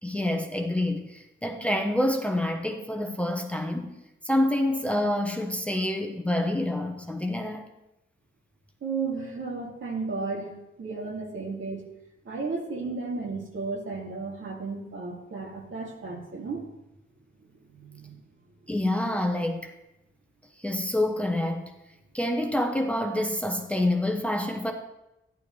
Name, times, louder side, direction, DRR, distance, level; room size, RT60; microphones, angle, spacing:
voice 1, 0.0-4.0 4.2-7.7 18.7-19.7 20.6-21.7 22.1-24.7, left 1 dB, 5° left, 3 dB, 0.8 m, -27 dB
voice 2, 8.8-10.5 10.8-11.8 12.2-16.7 17.4-18.2, right 4 dB, 70° right, -1 dB, 2.4 m, -34 dB
14.0 x 10.5 x 3.2 m, 0.94 s
wide cardioid pair, 150°, 21 cm